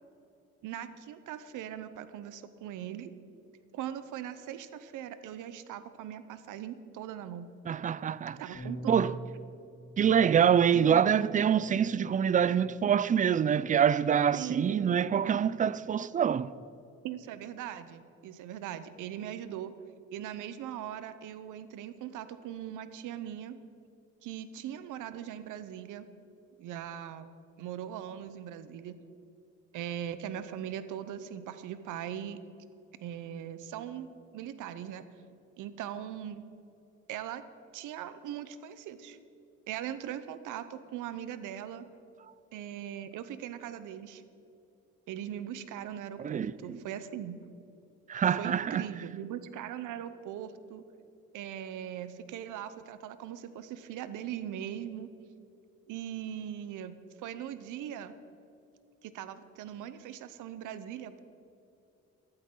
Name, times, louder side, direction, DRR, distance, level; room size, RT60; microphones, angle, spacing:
voice 1, 0.6-3.1 3.7-7.5 8.4-9.1 10.7-11.1 14.3-15.0 17.0-19.7 20.1-23.6 24.2-26.1 26.6-27.3 27.6-29.0 29.7-32.4 33.0-35.1 35.6-36.4 37.1-37.4 37.7-39.2 39.7-41.9 42.5-44.2 45.1-47.4 48.4-50.8 51.3-55.1 55.9-58.1 59.0-61.2, right 10 dB, 85° right, 0.8 m, -40 dB
voice 2, 7.7-8.4 8.9-9.1 10.0-16.5 46.2-46.8 48.1-48.9, right 8 dB, 25° right, 0.3 m, -25 dB
Bass guitar, 8.5-14.8, right 2 dB, 65° left, 3.1 m, -47 dB
14.5 x 12.5 x 3.8 m
cardioid pair, 90°, 30 cm